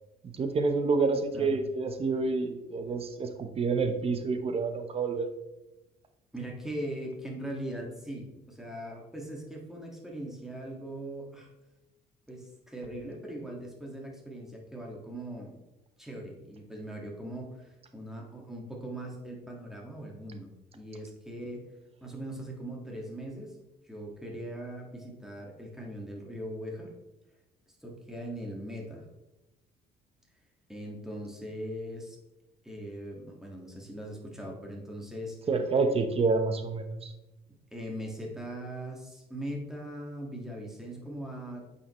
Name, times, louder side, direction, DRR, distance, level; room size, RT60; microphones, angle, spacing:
voice 1, 0.2-5.3 35.5-37.1, right 4 dB, 35° right, 7 dB, 0.9 m, -28 dB
voice 2, 6.3-11.5 12.3-15.6 16.0-21.7 22.0-23.6 23.8-26.9 27.8-29.1 30.7-32.2 32.6-35.4 37.7-41.7, right 1 dB, 5° right, -1 dB, 2.0 m, -40 dB
8.7 x 5.6 x 3.2 m, 0.98 s
cardioid pair, 110°, 17 cm